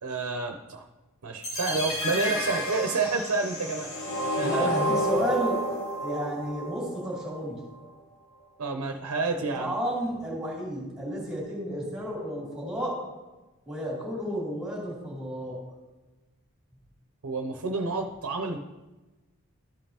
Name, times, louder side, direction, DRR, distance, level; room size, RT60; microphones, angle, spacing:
voice 1, 0.0-0.8 1.2-4.7 8.6-9.7 17.2-18.6, right 3 dB, 90° right, 4 dB, 0.7 m, -29 dB
sound 1, 1.4-7.4, equal, 75° left, 1.6 m, -30 dB
voice 2, 4.4-5.6 6.0-7.6 9.6-12.9 13.7-15.6, equal, 5° right, -7 dB, 2.6 m, -32 dB
13.0 x 5.2 x 2.9 m, 1.1 s
head